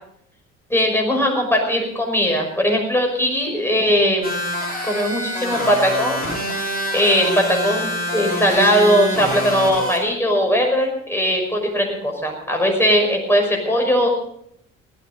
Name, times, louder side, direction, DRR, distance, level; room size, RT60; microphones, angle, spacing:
voice 1, 0.7-4.4 4.8-6.2 6.9-14.1, equal, 5° left, 1 dB, 5.7 m, -19 dB
sound 1, 4.2-10.0, equal, 25° left, 6.0 m, -26 dB
17.5 x 13.5 x 5.3 m, 0.68 s
figure-of-eight pair, 55°, 37 cm